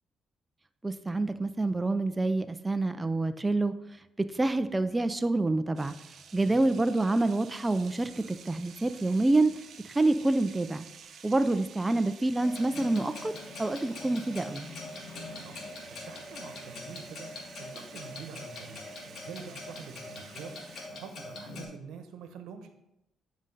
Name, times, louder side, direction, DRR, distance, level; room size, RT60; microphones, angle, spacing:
voice 1, 0.8-3.8 4.2-5.9 6.3-9.5 9.8-10.9 11.2-13.3 13.6-14.7, right 2 dB, 15° right, 9 dB, 0.4 m, -27 dB
sound 1, 5.8-20.9, right 7 dB, 60° right, 0.6 m, -51 dB
Clock, 12.4-21.7, left 2 dB, 60° left, 1.8 m, -43 dB
voice 2, 15.3-22.7, right 6 dB, 85° right, 7 dB, 0.9 m, -46 dB
9.6 x 5.1 x 4.0 m, 0.86 s
cardioid pair, 90°, 0 cm